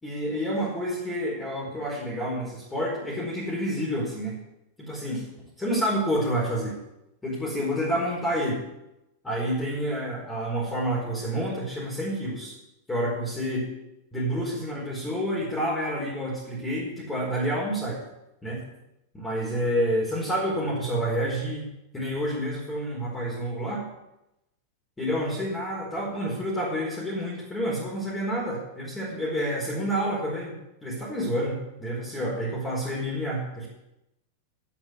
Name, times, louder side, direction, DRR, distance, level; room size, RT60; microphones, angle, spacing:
voice 1, 0.0-4.4 4.8-5.2 5.6-6.8 7.2-8.6 9.2-12.5 12.9-13.7 14.1-18.0 18.4-18.6 19.1-21.6 21.9-23.8 25.0-30.5 30.8-33.7, equal, 10° left, -5 dB, 4.6 m, -29 dB
11.0 x 7.6 x 9.5 m, 0.90 s
figure-of-eight pair, 90°, 0 cm